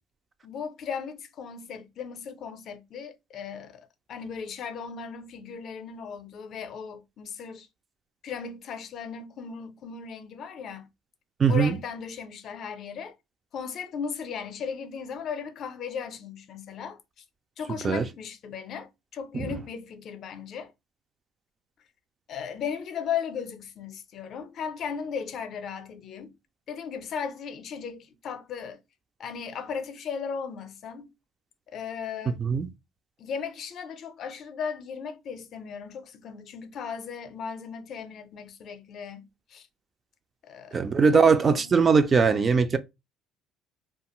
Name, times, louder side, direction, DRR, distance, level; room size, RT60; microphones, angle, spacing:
voice 1, 0.4-7.7 8.2-10.9 11.5-13.1 13.5-17.0 17.6-20.7 22.3-26.4 26.7-28.8 29.2-31.1 31.7-32.4 33.2-39.7 40.4-41.8, left 6 dB, 50° left, 0.5 m, -36 dB
voice 2, 11.4-11.8 17.8-18.0 19.3-19.5 32.3-32.7 40.7-42.8, right 5 dB, 30° right, 0.3 m, -21 dB
2.4 x 2.3 x 2.9 m
cardioid pair, 115°, 0 cm